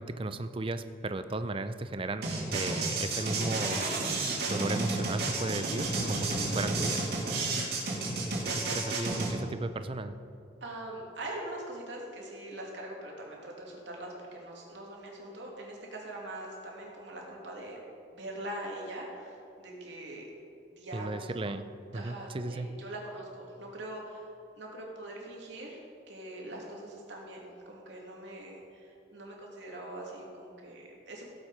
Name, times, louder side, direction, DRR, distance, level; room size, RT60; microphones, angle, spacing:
voice 1, 0.0-3.9 4.1-7.1 8.4-10.2 20.9-21.6 21.9-22.7, right 2 dB, 30° right, 10 dB, 0.5 m, -35 dB
sound 1, 2.2-9.3, right 3 dB, 60° right, 2.6 m, -31 dB
voice 2, 10.6-17.8 18.1-20.3 20.8-21.3 21.9-24.3 24.5-25.8 26.1-31.3, right 1 dB, 80° right, -2 dB, 2.6 m, -42 dB
17.0 x 7.6 x 4.9 m, 2.6 s
head